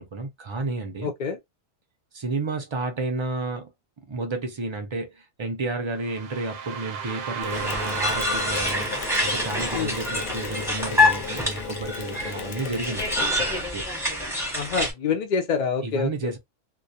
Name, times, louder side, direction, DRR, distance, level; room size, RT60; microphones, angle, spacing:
voice 1, 0.0-1.1 2.1-3.7 4.1-13.9 15.8-16.4, right 3 dB, 50° right, 0.3 m, -31 dB
voice 2, 1.0-1.4 9.7-9.9 14.5-16.3, left 5 dB, 90° left, 0.4 m, -26 dB
sound 1, 5.9-11.9, right 7 dB, 85° right, 1.0 m, -36 dB
Mechanisms, 7.4-13.7, left 6 dB, 65° left, 0.7 m, -35 dB
sound 2, 7.5-14.9, left 2 dB, 5° right, 0.6 m, -26 dB
2.2 x 2.2 x 2.6 m
omnidirectional pair, 1.3 m